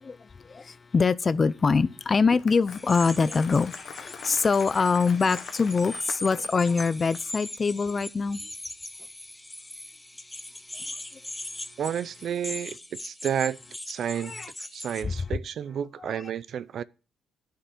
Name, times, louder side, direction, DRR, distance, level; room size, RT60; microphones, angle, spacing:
voice 1, 0.0-8.4 14.2-14.5 15.0-15.1, left 4 dB, 35° left, 0.6 m, -24 dB
Applause, 2.1-7.2, left 7 dB, 60° left, 1.2 m, -43 dB
sound 1, 2.7-15.0, left 1 dB, 10° left, 0.9 m, -40 dB
voice 2, 11.8-13.6 13.9-14.4 14.7-16.8, right 9 dB, 65° right, 0.5 m, -31 dB
10.5 x 6.7 x 6.1 m
cardioid pair, 90°, 0 cm